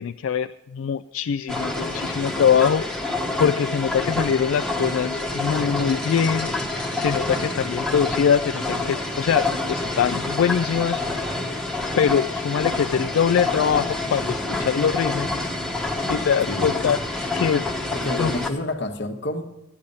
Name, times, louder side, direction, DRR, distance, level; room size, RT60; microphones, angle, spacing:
voice 1, 0.0-2.9 3.4-11.0 12.0-15.5 16.1-17.0 17.4-17.7 18.2-18.3, left 7 dB, 75° left, 11 dB, 0.3 m, -23 dB
sound 1, 1.5-18.5, left 2 dB, 5° left, 1.0 m, -27 dB
voice 2, 17.9-19.5, left 1 dB, 55° left, 6 dB, 1.1 m, -28 dB
13.5 x 10.0 x 5.4 m, 0.99 s
head